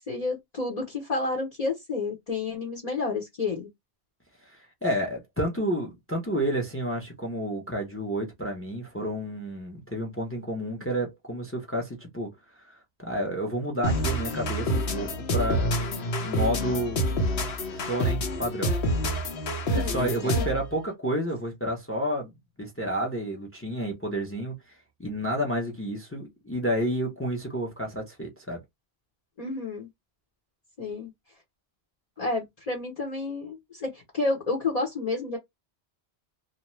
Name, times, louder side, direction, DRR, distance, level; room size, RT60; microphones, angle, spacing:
voice 1, 0.1-3.7 19.6-20.5 29.4-29.9 30.8-31.1 32.2-35.4, left 3 dB, 40° left, 0.8 m, -30 dB
voice 2, 4.4-15.7 16.2-17.0 17.7-18.8 19.7-22.3 22.6-24.5 25.0-28.6, equal, 15° left, 0.6 m, -30 dB
sound 1, 13.8-20.7, equal, 75° left, 1.0 m, -27 dB
2.6 x 2.2 x 3.0 m
omnidirectional pair, 1.1 m